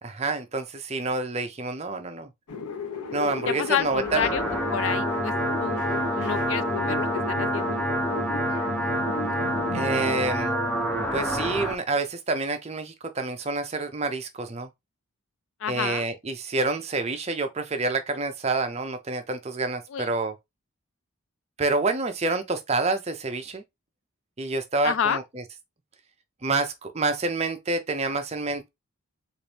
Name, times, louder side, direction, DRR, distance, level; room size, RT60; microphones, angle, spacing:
voice 1, 0.0-2.3 3.1-4.3 9.7-10.6 11.1-14.7 15.7-20.3 21.6-23.6 24.4-25.4 26.4-28.7, right 3 dB, 30° right, 0.5 m, -28 dB
sound 1, 2.5-10.2, left 5 dB, 90° left, 0.8 m, -35 dB
voice 2, 3.5-4.4 4.7-5.3 5.6-5.8 6.2-7.8 15.6-16.0 19.9-20.1 24.8-25.2, left 8 dB, 60° left, 0.3 m, -29 dB
sound 2, 3.8-11.8, equal, 5° left, 0.7 m, -27 dB
4.1 x 2.5 x 3.3 m
head